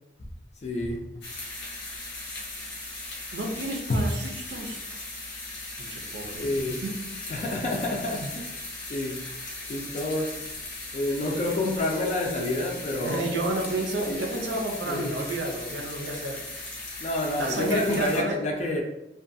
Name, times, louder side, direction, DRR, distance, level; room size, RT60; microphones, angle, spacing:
voice 1, 0.6-1.1 3.9-4.0 6.4-6.8 7.3-9.3 9.7-10.5 10.9-13.3 14.1-14.2 14.8-15.2 17.0-18.8, left 1 dB, 40° left, 0.3 m, -28 dB
sound 1, 1.2-18.2, left 2 dB, 90° left, 0.9 m, -38 dB
voice 2, 3.3-4.8 5.8-6.4 6.7-6.9 12.8-16.7 17.4-18.4, right 2 dB, 85° right, 0.5 m, -31 dB
2.5 x 2.2 x 2.5 m
head